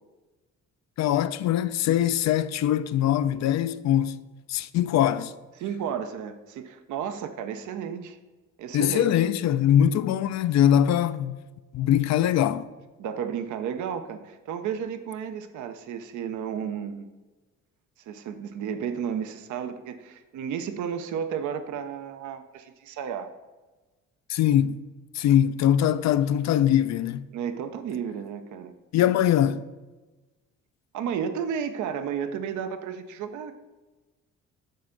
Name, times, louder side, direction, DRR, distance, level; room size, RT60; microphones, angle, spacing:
voice 1, 1.0-4.2 4.5-5.3 8.7-11.4 11.7-12.7 24.3-24.8 25.1-27.3 28.9-29.6, left 10 dB, 65° left, 0.4 m, -22 dB
voice 2, 5.6-8.2 8.6-9.1 13.0-17.1 18.1-23.3 27.3-28.7 30.9-33.5, right 7 dB, 75° right, 0.7 m, -32 dB
9.3 x 4.3 x 3.8 m
cardioid pair, 90°, 30 cm